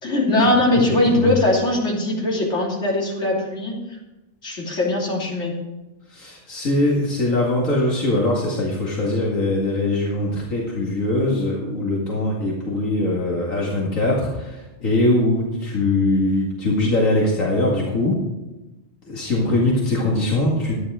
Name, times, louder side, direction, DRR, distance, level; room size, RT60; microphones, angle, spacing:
voice 1, 0.0-3.8 4.4-5.5, left 1 dB, 60° left, -3 dB, 3.3 m, -20 dB
voice 2, 0.9-1.3 6.1-18.2 19.1-20.7, left 2 dB, 80° left, -4 dB, 2.6 m, -21 dB
12.5 x 10.0 x 5.0 m, 1.0 s
omnidirectional pair, 1.3 m